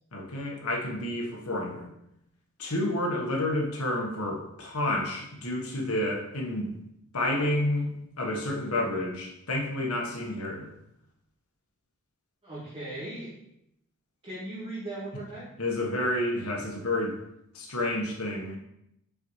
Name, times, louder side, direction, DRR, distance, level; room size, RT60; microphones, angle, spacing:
voice 1, 0.1-1.9 2.6-6.7 7.1-10.7 15.6-17.2 17.5-18.6, left 1 dB, 80° left, -1 dB, 1.3 m, -30 dB
voice 2, 12.4-13.3 14.2-15.5, right 1 dB, 25° right, -11 dB, 2.4 m, -38 dB
5.6 x 5.5 x 3.2 m, 0.81 s
head